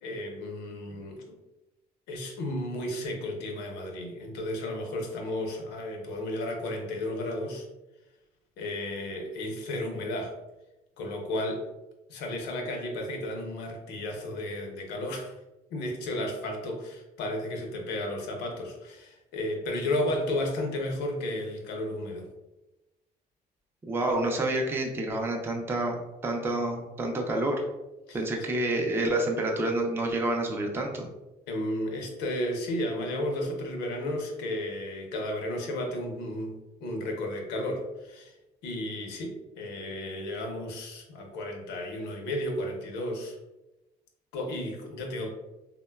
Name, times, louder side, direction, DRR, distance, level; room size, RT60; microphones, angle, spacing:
voice 1, 0.0-1.4 2.1-7.7 8.6-10.3 11.0-11.7 12.1-15.4 15.7-22.3 28.1-28.2 31.5-38.3 38.6-43.4 44.3-45.3, left 1 dB, 85° left, 2 dB, 0.6 m, -33 dB
voice 2, 23.9-27.6 28.1-31.1, right 1 dB, 15° right, 1 dB, 0.4 m, -28 dB
3.5 x 2.1 x 2.2 m, 1.0 s
cardioid pair, 110°, 17 cm